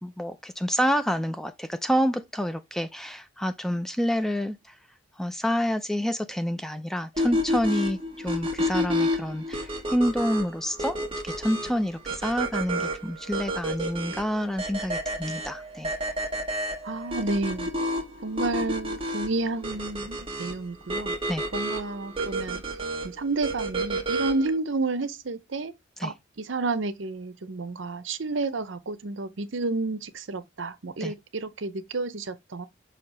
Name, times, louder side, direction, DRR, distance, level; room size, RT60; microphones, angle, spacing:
voice 1, 0.0-4.8 5.2-11.0 11.2-15.9 21.3-21.5 26.0-26.1 31.0-31.1, equal, ahead, 0.4 m, -28 dB
sound 1, 7.2-24.6, equal, 25° right, 1.3 m, -30 dB
voice 2, 16.8-17.7 18.2-21.1 21.5-22.6 23.0-25.7 26.0-32.7, right 3 dB, 70° right, 0.7 m, -30 dB
6.5 x 2.8 x 5.2 m
head